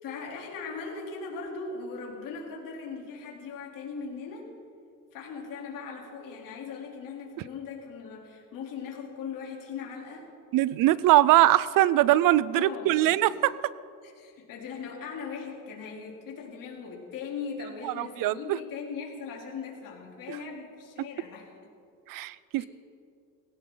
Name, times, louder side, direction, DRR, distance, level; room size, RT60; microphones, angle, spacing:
voice 1, 0.0-4.5 5.1-10.3 12.5-13.4 14.0-21.5 22.5-22.7, left 5 dB, 70° left, -1 dB, 3.6 m, -39 dB
voice 2, 10.5-13.5 17.8-18.6 20.3-20.4 22.1-22.7, right 15 dB, 75° right, 19 dB, 0.5 m, -22 dB
20.5 x 17.0 x 4.0 m, 2.4 s
cardioid pair, 130°, 34 cm